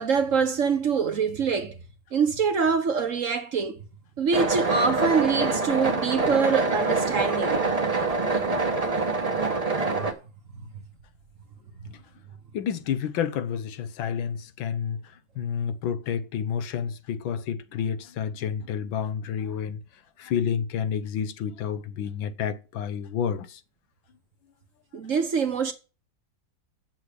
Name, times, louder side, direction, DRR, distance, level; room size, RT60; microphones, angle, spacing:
voice 1, 0.0-1.8 2.1-3.8 4.2-7.6 9.9-10.1 24.9-25.7, right 5 dB, 50° right, 1.2 m, -24 dB
sound 1, 4.3-10.1, right 3 dB, 25° right, 1.0 m, -25 dB
voice 2, 12.5-15.0 15.4-19.8 20.2-23.6, left 8 dB, 85° left, 1.7 m, -29 dB
8.2 x 7.4 x 6.7 m
omnidirectional pair, 2.1 m